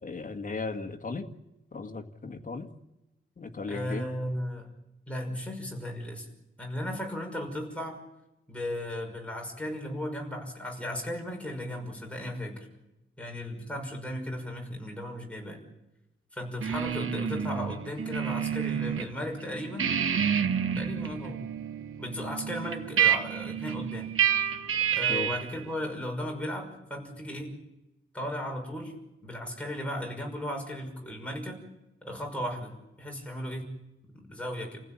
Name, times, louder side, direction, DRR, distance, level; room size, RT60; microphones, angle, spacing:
voice 1, 0.0-1.3 1.7-2.7 3.4-4.0 25.1-25.3, left 4 dB, 40° left, 5 dB, 1.8 m, -36 dB
voice 2, 3.7-4.7 5.1-6.3 6.6-8.0 8.5-12.7 13.2-15.6 16.3-19.9 20.8-21.5 22.0-24.1 24.9-27.6 28.1-28.9 29.2-31.6 32.0-33.7 34.1-34.8, left 1 dB, 5° left, 0 dB, 5.9 m, -36 dB
sound 1, 16.6-19.1 19.4-25.6, right 8 dB, 80° right, 1.3 m, -29 dB
30.0 x 16.0 x 8.9 m, 0.96 s
wide cardioid pair, 180°, 21 cm